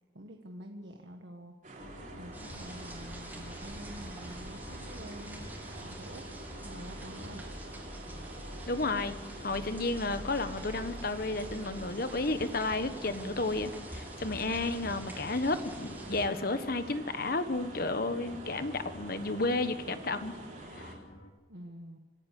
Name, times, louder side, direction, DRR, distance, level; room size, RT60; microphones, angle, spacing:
voice 1, 0.1-1.6 2.2-5.5 5.7-6.3 6.6-7.4 21.5-22.0, equal, 70° right, 3 dB, 1.5 m, -47 dB
sound 1, 1.6-21.0, right 2 dB, 45° right, 4.2 m, -47 dB
sound 2, 1.8-21.3, left 1 dB, 75° left, 3.2 m, -49 dB
sound 3, 2.3-16.3, right 1 dB, 10° right, 2.9 m, -47 dB
voice 2, 8.7-20.4 20.8-20.9, left 2 dB, 50° left, 10 dB, 1.3 m, -32 dB
25.5 x 12.5 x 8.4 m, 1.3 s
head